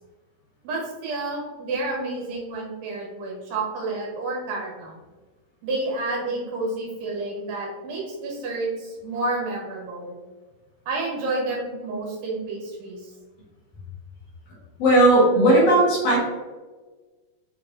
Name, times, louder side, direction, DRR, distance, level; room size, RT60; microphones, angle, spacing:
voice 1, 0.6-5.0 5.6-10.2 10.9-13.1, right 2 dB, 80° right, -3 dB, 2.9 m, -30 dB
voice 2, 14.8-16.2, right 1 dB, 60° left, -6 dB, 2.2 m, -16 dB
6.3 x 2.9 x 2.7 m, 1.3 s
omnidirectional pair, 3.8 m